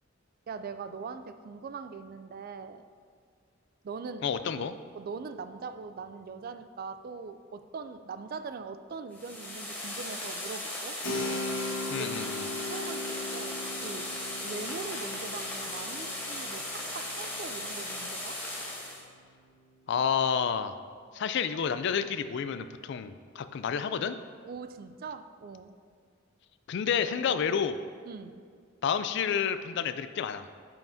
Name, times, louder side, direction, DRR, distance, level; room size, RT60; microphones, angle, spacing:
voice 1, 0.5-2.8 3.8-4.7 4.9-11.0 11.9-12.1 12.6-14.2 14.4-18.4 24.4-25.8 28.0-28.4, right 5 dB, 45° right, 10 dB, 0.3 m, -41 dB
voice 2, 4.2-4.7 11.9-12.4 19.9-20.7 21.1-24.2 26.7-27.8 28.8-30.5, left 7 dB, 60° left, 11 dB, 0.3 m, -30 dB
sound 1, 9.1-19.0, left 1 dB, 10° left, 1.1 m, -37 dB
Keyboard (musical), 11.0-19.4, left 2 dB, 75° left, 1.0 m, -39 dB
9.0 x 5.7 x 2.7 m, 2.1 s
head